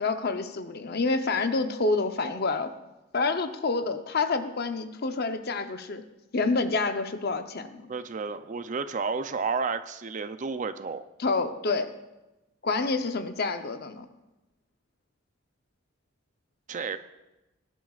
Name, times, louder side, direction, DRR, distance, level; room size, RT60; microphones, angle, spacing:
voice 1, 0.0-2.7 3.1-6.0 6.3-7.9 11.2-11.9 12.6-14.1, left 3 dB, 50° left, 8 dB, 0.8 m, -28 dB
voice 2, 7.9-11.0 16.7-17.0, right 4 dB, 40° right, 11 dB, 0.5 m, -31 dB
19.5 x 11.0 x 2.4 m, 0.99 s
head